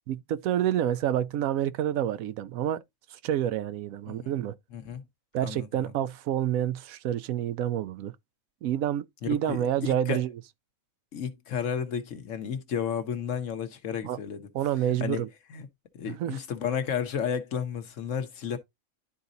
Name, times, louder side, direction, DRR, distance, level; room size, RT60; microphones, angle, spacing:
voice 1, 0.1-2.8 3.1-4.5 5.3-8.1 8.6-10.4 14.0-14.2 14.5-15.3 16.1-16.4, right 11 dB, 90° right, 1.0 m, -28 dB
voice 2, 4.7-5.0 5.4-5.9 9.2-10.2 11.1-14.5 15.0-15.2 15.5-15.7 15.9-18.6, left 7 dB, 70° left, 1.2 m, -32 dB
11.5 x 4.0 x 2.6 m
omnidirectional pair, 1.4 m